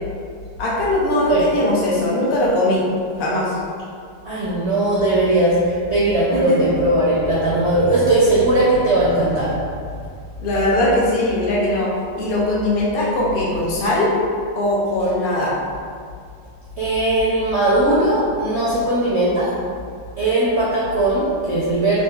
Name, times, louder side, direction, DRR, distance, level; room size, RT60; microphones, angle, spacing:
voice 1, 0.6-2.8 3.2-3.6 6.3-6.7 10.4-11.9 12.2-14.1 14.5-15.5, left 1 dB, 65° left, -6 dB, 0.5 m, -20 dB
voice 2, 4.2-9.5 16.8-19.5 20.2-22.0, right 1 dB, 65° right, -8 dB, 0.6 m, -18 dB
3.7 x 2.8 x 2.3 m, 2.2 s
omnidirectional pair, 1.8 m